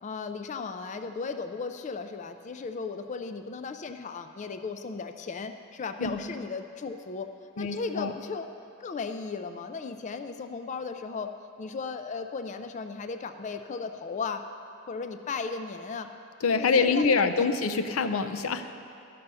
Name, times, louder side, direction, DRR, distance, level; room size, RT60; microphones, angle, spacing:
voice 1, 0.0-7.3 7.6-8.5 8.8-11.3 11.6-14.4 14.9-16.1 16.5-17.5, left 4 dB, 35° left, 8 dB, 0.4 m, -36 dB
voice 2, 6.0-6.3 7.6-8.1 16.4-18.9, left 4 dB, 90° left, 9 dB, 0.5 m, -26 dB
12.5 x 6.8 x 5.5 m, 2.6 s
head